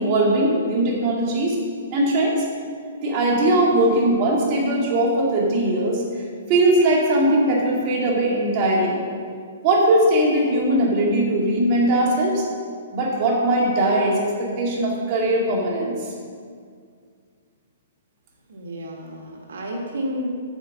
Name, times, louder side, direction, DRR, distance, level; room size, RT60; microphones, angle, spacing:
voice 1, 0.0-1.6 1.9-2.4 3.0-6.0 6.5-9.0 9.6-12.5 12.9-15.9, right 1 dB, 35° right, -3 dB, 2.0 m, -20 dB
voice 2, 18.5-20.4, equal, 85° right, 0 dB, 1.5 m, -31 dB
8.9 x 4.6 x 7.2 m, 2.1 s
hypercardioid pair, 160°, 0 cm